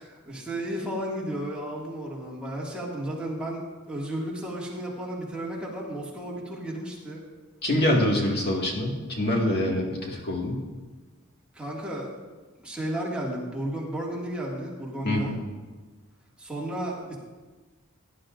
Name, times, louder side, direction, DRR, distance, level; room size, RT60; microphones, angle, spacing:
voice 1, 0.0-7.2 11.5-12.1 12.6-15.4 16.4-17.2, right 1 dB, 5° right, -5 dB, 2.1 m, -33 dB
voice 2, 7.6-10.6 15.0-15.4, left 1 dB, 45° left, -1 dB, 2.0 m, -25 dB
17.5 x 11.5 x 2.6 m, 1.3 s
head